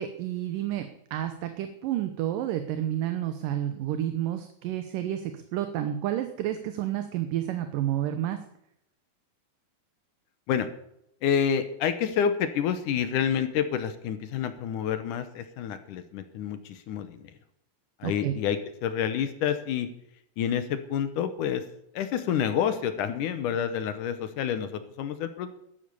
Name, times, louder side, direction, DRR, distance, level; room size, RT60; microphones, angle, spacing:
voice 1, 0.0-8.4 18.0-18.3, right 12 dB, 75° right, 8 dB, 2.4 m, -30 dB
voice 2, 11.2-17.3 18.0-19.9 20.4-21.6 21.9-25.5, left 8 dB, 70° left, 10 dB, 2.3 m, -28 dB
13.0 x 11.0 x 6.8 m, 0.78 s
omnidirectional pair, 4.2 m